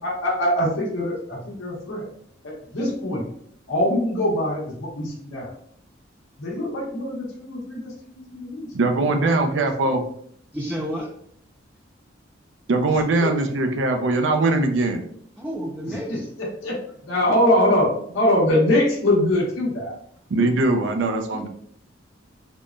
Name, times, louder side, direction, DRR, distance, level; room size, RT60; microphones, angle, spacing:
voice 1, 0.0-2.0 2.4-3.3 3.7-5.5 6.4-8.7 9.2-9.3 13.2-13.3 16.1-16.8 17.0-19.9, left 1 dB, 85° left, -5 dB, 0.9 m, -23 dB
voice 2, 8.7-10.0 12.7-15.0 20.3-21.5, right 2 dB, 65° right, 5 dB, 0.5 m, -21 dB
voice 3, 10.5-11.1 15.4-16.3 21.3-21.5, equal, 5° right, -2 dB, 0.3 m, -31 dB
3.5 x 2.1 x 2.5 m, 0.65 s
head